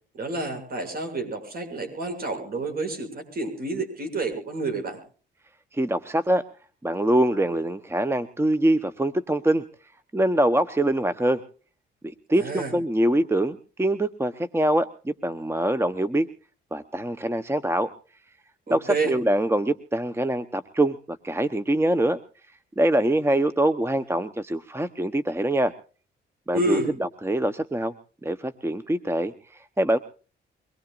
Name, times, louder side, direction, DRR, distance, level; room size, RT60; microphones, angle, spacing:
voice 1, 0.1-5.0 12.3-12.7 18.7-19.1 26.5-26.9, right 2 dB, 50° right, 6 dB, 7.1 m, -29 dB
voice 2, 5.7-6.4 6.8-9.6 10.1-11.4 12.0-16.3 16.7-17.9 18.7-22.2 22.8-25.7 26.5-27.9 28.2-30.0, right 1 dB, 10° right, 13 dB, 1.0 m, -24 dB
24.0 x 20.5 x 2.5 m, 0.39 s
cardioid pair, 90°, 20 cm